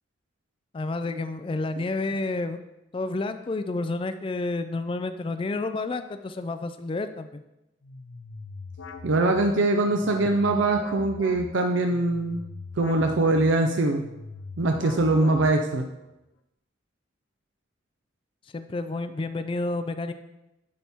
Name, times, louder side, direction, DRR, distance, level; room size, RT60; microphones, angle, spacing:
voice 1, 0.7-2.6 2.9-7.4 18.5-20.1, left 2 dB, 25° left, 10 dB, 0.3 m, -30 dB
sound 1, 7.8-15.9, left 4 dB, 90° left, 0.6 m, -41 dB
voice 2, 9.0-12.4 12.8-14.0 14.6-15.9, right 2 dB, 75° right, 4 dB, 0.5 m, -23 dB
10.5 x 4.3 x 3.5 m, 0.93 s
head